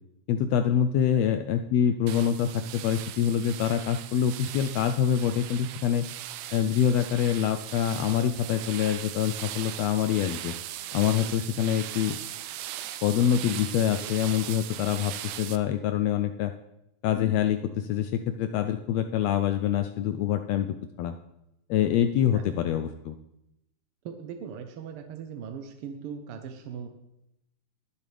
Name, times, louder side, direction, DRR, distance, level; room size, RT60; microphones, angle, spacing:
voice 1, 0.3-6.0 6.5-10.5 10.9-12.2 13.0-16.5 17.0-20.7 21.0-21.1 21.7-23.1, left 9 dB, 80° left, 8 dB, 1.5 m, -25 dB
sound 1, 2.1-15.6, right 13 dB, 85° right, 2.1 m, -39 dB
voice 2, 24.0-26.9, right 7 dB, 70° right, 6 dB, 1.4 m, -40 dB
21.5 x 7.4 x 3.4 m, 0.85 s
omnidirectional pair, 3.4 m